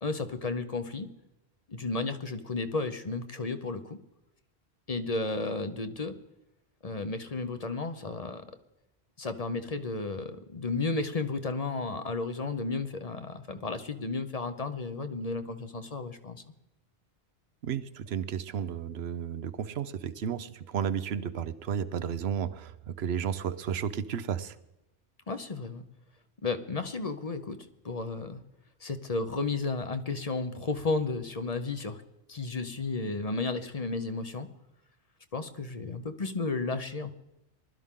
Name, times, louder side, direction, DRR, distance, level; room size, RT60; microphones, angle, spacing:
voice 1, 0.0-1.1 1.7-4.0 4.9-6.2 6.8-8.5 9.2-16.4 25.3-25.8 26.4-28.4 28.8-32.0 32.3-34.5 35.3-37.1, left 3 dB, 40° left, 9 dB, 0.9 m, -33 dB
voice 2, 17.6-24.6, right 8 dB, 75° right, 14 dB, 1.0 m, -33 dB
20.0 x 12.5 x 3.7 m, 0.91 s
omnidirectional pair, 1.1 m